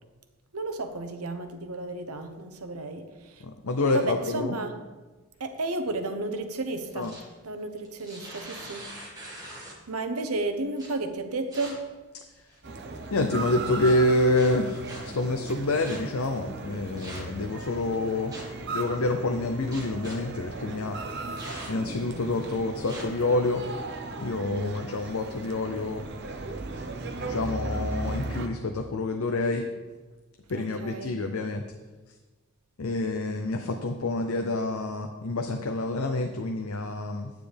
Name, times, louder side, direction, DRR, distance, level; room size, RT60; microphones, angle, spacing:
voice 1, 0.5-3.4 3.9-4.8 5.4-7.2 7.4-8.9 9.9-11.9 24.4-24.9 30.5-31.2, right 2 dB, 85° right, 7 dB, 0.9 m, -33 dB
voice 2, 3.4-4.6 7.0-7.1 13.1-18.4 18.7-21.0 21.7-23.6 24.2-26.0 27.2-29.7 30.5-31.6 32.8-37.3, left 2 dB, 75° left, 5 dB, 0.6 m, -27 dB
sound 1, 6.8-7.3 7.8-9.9 10.8-10.9 11.5-11.7 12.4-12.8 13.8-13.9 14.3-15.0 15.8-16.0 17.0-17.4 18.3-18.6 19.7-20.2 21.4-21.9 22.9-23.0, right 1 dB, 15° right, 1.9 m, -42 dB
sound 2, 12.6-28.5, right 2 dB, 50° right, 0.8 m, -37 dB
9.7 x 9.1 x 3.4 m, 1.3 s
head